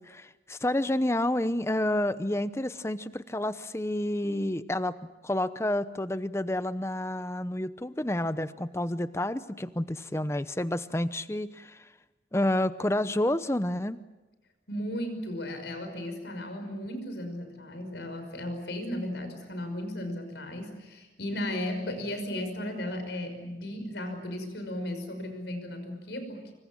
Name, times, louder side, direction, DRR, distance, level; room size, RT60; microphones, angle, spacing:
voice 1, 0.0-5.0 5.2-11.8 12.3-14.0, left 1 dB, 15° left, 13 dB, 0.8 m, -29 dB
voice 2, 14.7-26.5, left 1 dB, 85° left, 7 dB, 5.8 m, -35 dB
25.5 x 24.5 x 7.4 m, 1.1 s
head